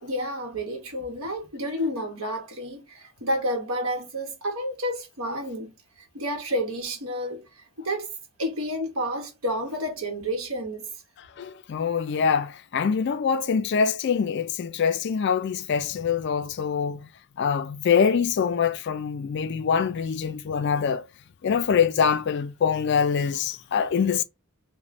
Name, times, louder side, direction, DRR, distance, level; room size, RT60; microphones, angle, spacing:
voice 1, 0.0-5.7 6.0-8.1 8.4-10.9, equal, 70° right, 0.9 m, -30 dB
voice 2, 11.2-17.1 17.4-21.0 21.4-24.2, left 6 dB, 50° left, 0.3 m, -24 dB
3.0 x 2.1 x 4.1 m
head